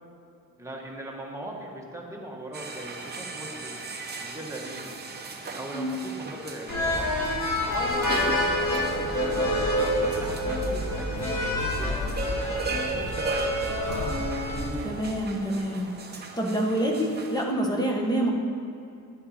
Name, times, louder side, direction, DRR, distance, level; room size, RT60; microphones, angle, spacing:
voice 1, 0.6-3.8 4.2-4.9 5.5-7.3 7.7-9.4 10.1-12.5 12.9-13.7, right 1 dB, 10° right, -2 dB, 1.4 m, -39 dB
sound 1, 2.5-17.4, right 3 dB, 25° right, 0.9 m, -37 dB
sound 2, 6.7-14.7, left 1 dB, 50° left, 1.9 m, -27 dB
voice 2, 14.8-18.3, right 1 dB, 10° left, -1 dB, 1.3 m, -27 dB
10.5 x 9.0 x 4.3 m, 2.6 s
wide cardioid pair, 140°, 37 cm